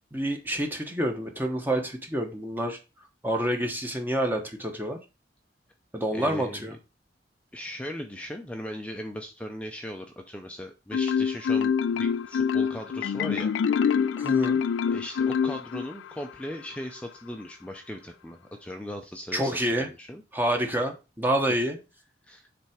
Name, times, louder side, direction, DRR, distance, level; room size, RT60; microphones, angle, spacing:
voice 1, 0.1-2.8 3.2-5.0 5.9-6.7 14.2-14.6 19.3-19.9 20.3-21.8, right 1 dB, 10° right, 4 dB, 1.0 m, -28 dB
voice 2, 6.1-6.8 7.5-13.5 14.9-19.5 19.8-20.2 22.2-22.5, equal, 5° left, 4 dB, 0.6 m, -38 dB
Marimba xylophone, 10.9-16.1, left 6 dB, 85° left, 0.3 m, -25 dB
7.3 x 3.4 x 4.9 m, 0.29 s
head